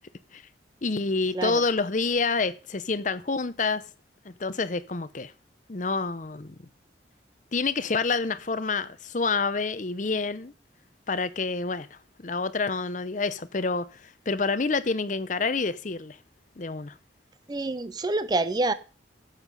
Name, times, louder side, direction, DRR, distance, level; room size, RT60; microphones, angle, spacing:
voice 1, 0.8-3.8 4.2-5.3 5.7-6.6 7.5-10.5 11.1-11.9 12.2-16.2 16.6-16.9, left 4 dB, 40° left, 0.7 m, -28 dB
voice 2, 17.5-18.7, right 2 dB, 20° right, 0.4 m, -27 dB
11.0 x 7.4 x 5.3 m
head